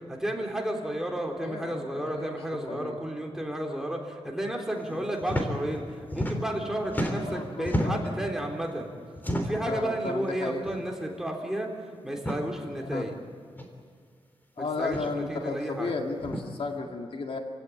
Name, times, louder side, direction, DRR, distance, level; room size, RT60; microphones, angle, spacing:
voice 1, 0.1-8.9 9.3-11.7 12.0-13.1 14.6-15.9, right 1 dB, 5° right, 0 dB, 3.6 m, -32 dB
voice 2, 1.4-2.3 2.7-3.1 4.9-5.1 7.1-8.0 9.7-10.6 12.9-13.1 14.6-17.4, left 3 dB, 65° left, 3 dB, 2.2 m, -34 dB
sound 1, 5.2-5.5 5.8-6.6 6.9-8.2 9.2-9.7 10.6-10.8 11.1-11.2 12.1-12.4 13.6-13.7 14.8-15.1 16.2-16.4, equal, 15° left, 3.3 m, -31 dB
28.5 x 16.5 x 9.9 m, 2.1 s
wide cardioid pair, 125°, 11 cm